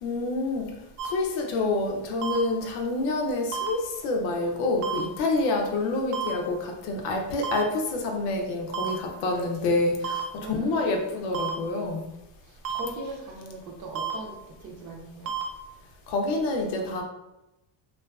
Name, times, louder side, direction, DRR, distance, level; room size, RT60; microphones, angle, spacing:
voice 1, 0.0-0.7 1.0-12.1 16.1-17.0, left 2 dB, 85° left, 2 dB, 0.6 m, -27 dB
sound 1, 1.0-1.1 2.2-2.4 3.5-3.7 4.8-5.0 6.1-6.3 7.4-7.6 8.7-8.9 10.0-10.2 11.3-11.5 12.6-12.8 14.0-14.1 15.3-15.4, right 8 dB, 80° right, 0.6 m, -30 dB
voice 2, 10.4-10.9 12.4-15.3, right 3 dB, 40° right, 0 dB, 0.6 m, -39 dB
2.4 x 2.3 x 2.3 m, 0.95 s
supercardioid pair, 90°, 46 cm